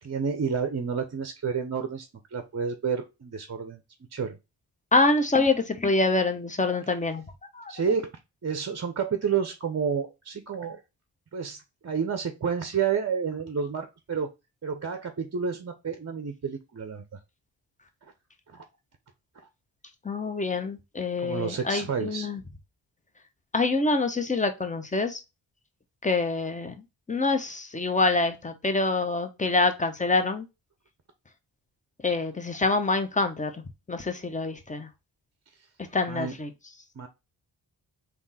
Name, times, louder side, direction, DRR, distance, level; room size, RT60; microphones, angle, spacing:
voice 1, 0.0-2.1 2.3-3.8 4.1-4.4 7.7-8.1 8.4-10.8 11.3-14.3 14.6-17.0 18.5-18.6 21.2-22.3 36.1-36.3 37.0-37.1, right 6 dB, 30° right, 7 dB, 0.7 m, -30 dB
voice 2, 4.9-7.2 7.5-7.7 20.0-22.4 23.5-25.2 26.0-30.4 32.0-34.9 35.9-36.5, left 3 dB, 15° left, 7 dB, 0.9 m, -26 dB
3.6 x 2.8 x 4.0 m, 0.25 s
supercardioid pair, 40°, 49 cm